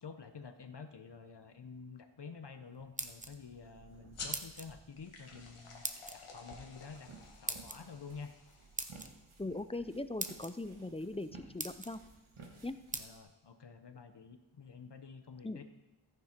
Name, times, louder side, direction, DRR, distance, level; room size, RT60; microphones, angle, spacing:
voice 1, 0.0-5.8 6.1-7.1 7.4-8.3 12.9-15.6, left 5 dB, 55° left, 8 dB, 0.9 m, -49 dB
sound 1, 2.8-3.6 4.3-4.7 5.8-6.2 7.5-7.8 8.8-9.1 9.8-9.9 10.2-10.5 11.1-11.2 11.6-12.0 12.9-13.1, right 2 dB, 15° right, 0.8 m, -40 dB
sound 2, 3.0-13.2, right 3 dB, 75° right, 1.9 m, -58 dB
sound 3, 4.1-9.2, left 4 dB, 85° left, 1.7 m, -51 dB
voice 2, 9.4-12.0 12.6-12.8 15.4-15.6, left 2 dB, 15° left, 12 dB, 0.4 m, -40 dB
14.0 x 9.6 x 4.4 m, 1.0 s
wide cardioid pair, 90°, 49 cm